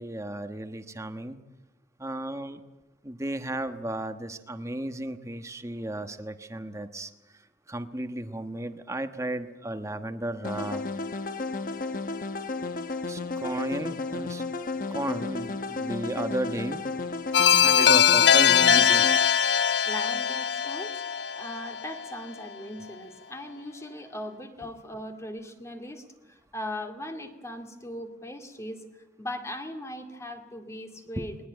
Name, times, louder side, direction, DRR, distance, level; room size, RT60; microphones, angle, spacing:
voice 1, 0.0-1.4 2.0-2.6 3.0-7.1 7.7-10.8 13.1-14.4 14.9-16.8 17.6-19.0 19.7-19.8 31.2-31.3, right 1 dB, 15° right, 8 dB, 1.2 m, -34 dB
sound 1, 10.4-19.2, left 3 dB, 50° left, 1.1 m, -33 dB
sound 2, 17.3-22.1, left 8 dB, 75° left, 0.7 m, -21 dB
voice 2, 19.9-21.0 21.4-28.8 29.2-31.4, left 1 dB, 15° left, 5 dB, 2.3 m, -39 dB
21.0 x 20.0 x 9.1 m, 1.0 s
head